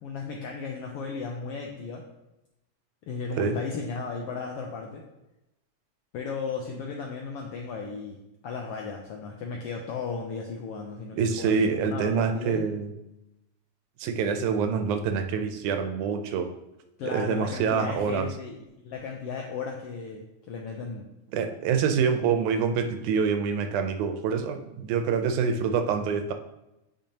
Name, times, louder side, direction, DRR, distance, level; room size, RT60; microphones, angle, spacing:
voice 1, 0.0-2.0 3.1-5.0 6.1-12.8 17.0-21.1, left 5 dB, 80° left, 1 dB, 1.3 m, -35 dB
voice 2, 11.1-12.9 14.0-16.5 17.0-18.3 21.3-26.3, right 6 dB, 90° right, 7 dB, 2.1 m, -26 dB
9.1 x 5.2 x 2.9 m, 0.92 s
omnidirectional pair, 3.4 m